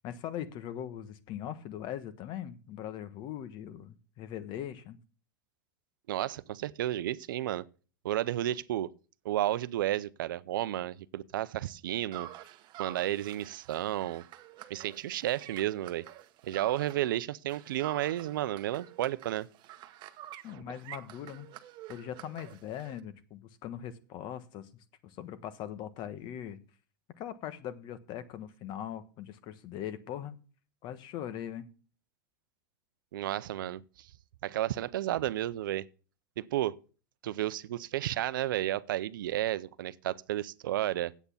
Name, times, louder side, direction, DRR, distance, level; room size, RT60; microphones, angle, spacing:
voice 1, 0.0-5.0 20.4-21.5 21.9-26.6 27.2-30.4 30.8-31.7, left 10 dB, 45° left, 1.3 m, -41 dB
voice 2, 6.1-7.7 8.0-8.9 9.2-12.3 12.8-14.2 14.7-16.1 16.4-19.5 33.1-34.1 34.4-35.9 36.4-36.8 37.2-41.1, right 13 dB, 80° right, 0.6 m, -32 dB
sound 1, 12.1-17.2 17.5-23.0, right 12 dB, 45° right, 1.0 m, -48 dB
8.3 x 8.0 x 7.0 m
supercardioid pair, 125°, 11 cm